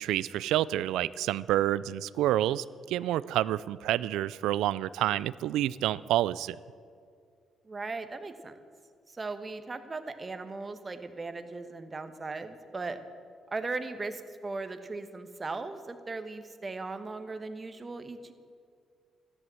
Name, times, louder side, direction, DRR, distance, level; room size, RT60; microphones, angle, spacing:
voice 1, 0.0-6.6, right 13 dB, 90° right, 19 dB, 0.3 m, -28 dB
voice 2, 7.6-8.6 9.1-13.0 13.5-18.3, right 3 dB, 30° right, 9 dB, 1.1 m, -38 dB
13.5 x 11.0 x 7.6 m, 2.2 s
cardioid pair, 90°, 0 cm